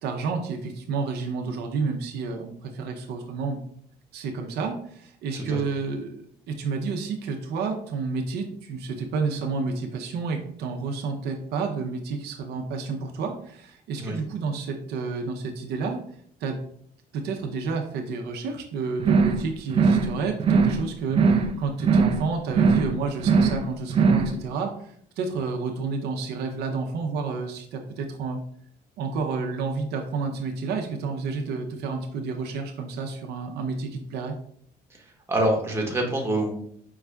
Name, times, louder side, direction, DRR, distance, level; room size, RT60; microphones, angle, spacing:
voice 1, 0.0-3.6 4.1-16.0 16.4-16.6 17.1-28.4 29.0-34.4, right 4 dB, 75° right, 3 dB, 0.6 m, -30 dB
sound 1, 19.0-19.4 19.7-20.1 20.4-20.8 21.1-21.5 21.8-22.2 22.5-22.9 23.2-23.6 23.9-24.3, right 5 dB, 35° right, 0.4 m, -20 dB
voice 2, 35.3-36.5, right 1 dB, 15° right, 0 dB, 1.2 m, -26 dB
5.3 x 2.4 x 3.4 m, 0.63 s
cardioid pair, 110°, 17 cm